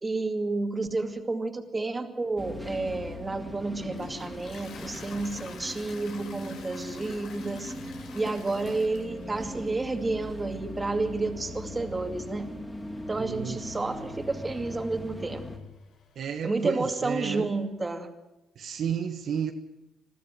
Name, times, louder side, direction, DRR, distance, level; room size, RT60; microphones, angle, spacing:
voice 1, 0.0-7.7 8.1-12.5 13.1-15.4 16.4-18.1, right 3 dB, 20° right, 6 dB, 2.4 m, -30 dB
sound 1, 2.4-15.6, left 1 dB, 10° left, 3.2 m, -40 dB
Toilet flush, 3.5-17.6, left 6 dB, 70° left, 3.1 m, -51 dB
voice 2, 13.2-13.6 16.2-17.5 18.6-19.5, right 8 dB, 65° right, 6 dB, 1.3 m, -32 dB
21.0 x 13.5 x 9.2 m, 0.99 s
cardioid pair, 85°, 0 cm